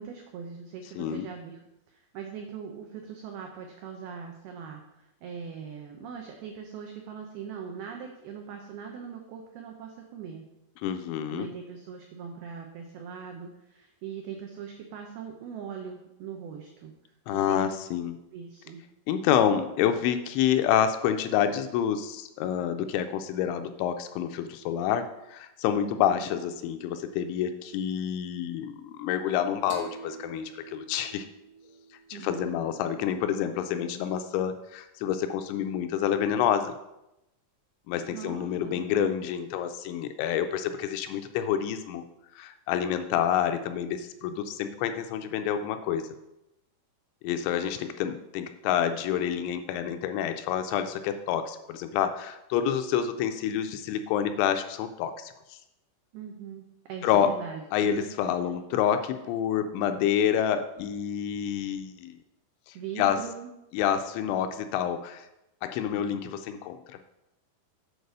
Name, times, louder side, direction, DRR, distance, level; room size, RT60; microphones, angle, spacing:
voice 1, 0.0-10.5 11.3-16.9 17.3-17.8 18.3-18.8 25.9-26.3 32.1-32.6 38.1-39.1 56.1-57.9 62.7-63.5 65.9-66.4, right 7 dB, 90° right, 2 dB, 2.2 m, -41 dB
voice 2, 1.0-1.3 10.8-11.5 17.3-18.2 19.1-31.3 32.1-36.7 37.9-42.0 42.3-46.1 47.2-55.6 57.0-57.3 57.7-62.2 62.7-63.2 63.7-65.3 65.6-67.0, left 9 dB, 85° left, 8 dB, 2.7 m, -28 dB
sound 1, 29.7-33.1, right 5 dB, 65° right, 2.4 m, -47 dB
8.1 x 4.7 x 6.5 m, 0.90 s
omnidirectional pair, 5.5 m